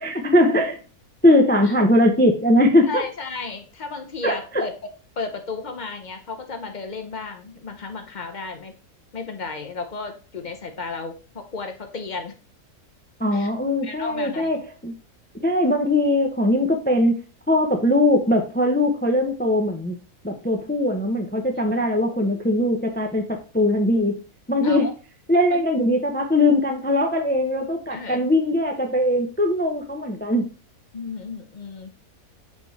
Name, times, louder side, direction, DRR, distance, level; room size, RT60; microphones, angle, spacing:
voice 1, 0.0-0.8 1.2-3.0 4.2-4.6 13.2-14.9 15.4-17.1 17.5-20.0 20.2-24.2 24.5-24.9 25.3-30.5, left 1 dB, 15° left, 4 dB, 0.3 m, -20 dB
voice 2, 2.9-4.7 5.2-8.7 9.1-12.3 13.3-13.5 13.8-14.6 24.6-24.9 25.5-25.6 27.9-28.3 30.9-31.9, left 4 dB, 40° left, 5 dB, 0.7 m, -33 dB
6.7 x 3.5 x 4.0 m, 0.35 s
omnidirectional pair, 1.6 m